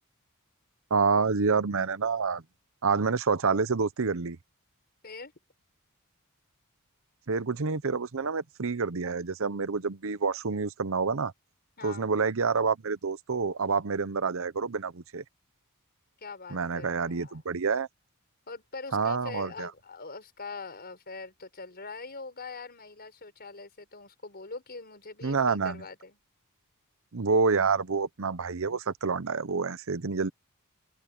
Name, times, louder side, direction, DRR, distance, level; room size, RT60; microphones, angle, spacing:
voice 1, 0.9-2.4 2.8-4.4 7.3-11.3 11.8-15.2 16.5-17.9 18.9-19.7 25.2-25.8 27.1-30.3, right 4 dB, 65° right, 0.8 m, -28 dB
voice 2, 16.2-17.4 18.5-26.2, left 4 dB, 45° left, 5.4 m, -43 dB
head